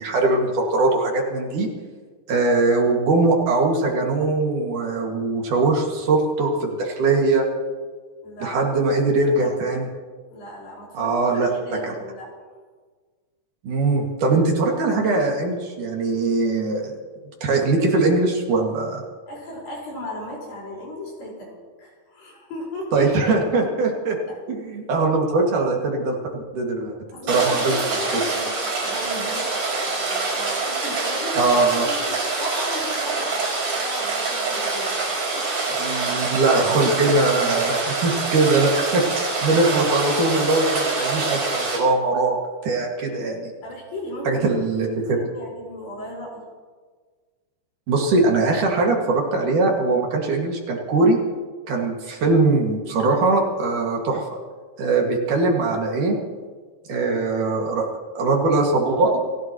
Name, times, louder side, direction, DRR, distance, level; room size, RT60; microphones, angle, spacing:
voice 1, 0.0-1.7 2.3-7.5 8.4-9.9 10.9-11.5 11.8-11.9 13.6-17.0 17.4-19.0 22.9-24.2 24.5-27.0 27.3-27.8 31.4-31.9 35.8-39.0 39.4-42.4 42.6-43.5 44.3-45.0 47.9-51.2 51.7-54.2 54.8-56.2 56.9-57.9 58.2-59.2, right 3 dB, 65° right, 0 dB, 3.6 m, -21 dB
voice 2, 8.2-8.7 9.4-9.6 10.3-12.3 19.3-23.1 24.0-24.4 27.1-35.7 36.4-36.6 43.6-44.4 44.7-46.5 56.9-57.1, left 1 dB, 85° left, -3 dB, 6.7 m, -36 dB
Rain, 27.3-41.8, right 3 dB, 85° right, 7.4 m, -25 dB
28.0 x 16.0 x 3.1 m, 1.5 s
omnidirectional pair, 3.9 m